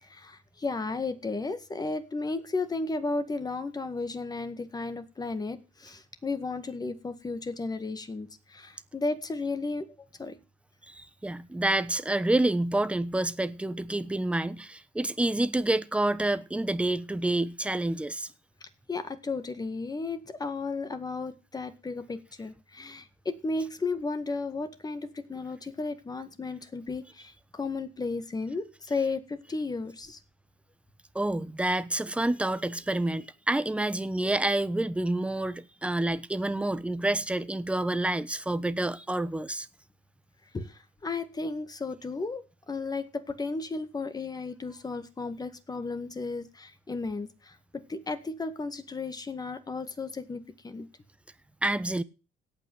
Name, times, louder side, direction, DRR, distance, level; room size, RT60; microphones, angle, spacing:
voice 1, 0.0-9.9 10.2-10.4 18.6-30.2 40.5-47.6 47.9-50.9, left 3 dB, 20° left, 1.9 m, -34 dB
voice 2, 10.9-18.3 31.1-39.7 51.6-52.0, right 1 dB, 5° right, 1.0 m, -28 dB
17.0 x 5.9 x 7.9 m
cardioid pair, 110°, 17 cm